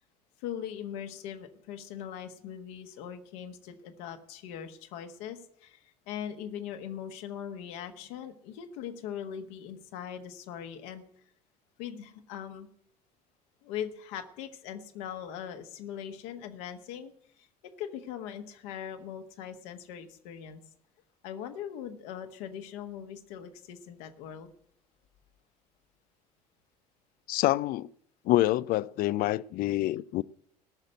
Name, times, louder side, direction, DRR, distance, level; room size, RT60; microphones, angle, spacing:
voice 1, 0.4-11.0 11.8-12.7 13.6-17.1 17.4-17.5 17.8-20.6 21.2-24.5, left 9 dB, 60° left, 1.5 m, -40 dB
voice 2, 27.3-27.9 28.3-30.2, left 16 dB, 45° left, 0.4 m, -26 dB
17.5 x 6.5 x 7.7 m
figure-of-eight pair, 60°, 21 cm